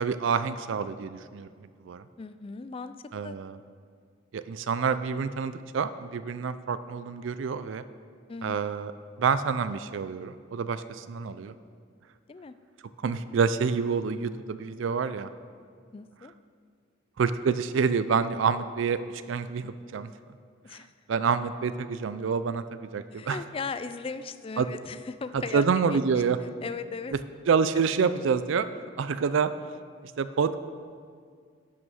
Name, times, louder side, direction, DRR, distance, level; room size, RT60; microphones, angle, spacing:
voice 1, 0.0-1.5 1.8-2.0 3.1-3.6 4.3-7.8 8.4-8.9 9.2-11.5 13.0-15.3 17.2-20.1 21.1-23.4 24.6-24.7 25.3-26.4 27.5-28.7 29.0-29.5 30.2-30.6, right 5 dB, 75° right, 13 dB, 0.4 m, -27 dB
voice 2, 2.2-2.9 3.2-3.4 8.3-8.6 12.3-12.5 15.9-16.3 20.6-20.9 23.1-26.2 26.6-27.1, left 4 dB, 30° left, 12 dB, 0.3 m, -37 dB
10.5 x 6.3 x 6.3 m, 2.1 s
head